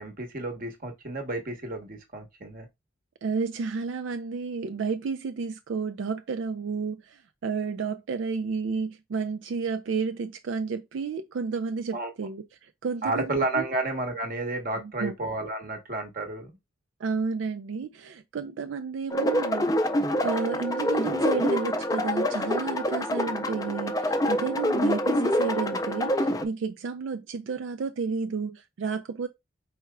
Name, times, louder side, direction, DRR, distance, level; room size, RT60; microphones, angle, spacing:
voice 1, 0.0-2.7 11.9-12.1 13.0-16.5, right 2 dB, 50° right, 1.0 m, -31 dB
voice 2, 3.2-13.7 14.8-15.1 17.0-19.7 20.0-29.3, right 5 dB, 80° right, 0.4 m, -31 dB
sound 1, 19.1-26.4, left 1 dB, 20° left, 0.4 m, -26 dB
4.7 x 4.4 x 2.2 m
head